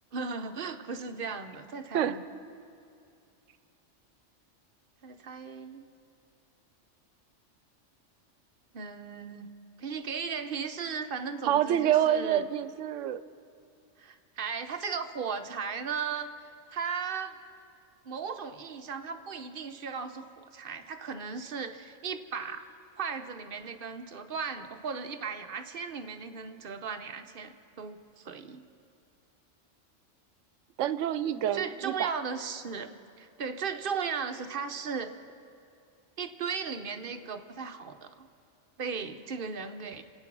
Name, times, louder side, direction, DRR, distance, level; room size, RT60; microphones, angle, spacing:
voice 1, 0.1-2.2 5.0-5.8 8.7-9.5 9.8-12.5 14.0-16.3 16.7-17.4 18.0-22.6 23.0-28.6 31.5-32.9 33.2-35.1 36.2-38.3 38.8-40.0, right 5 dB, 50° right, 7 dB, 0.9 m, -36 dB
voice 2, 11.4-13.2 30.8-32.1, right 10 dB, 85° right, 14 dB, 1.0 m, -27 dB
26.5 x 8.9 x 6.1 m, 2.5 s
omnidirectional pair, 1.3 m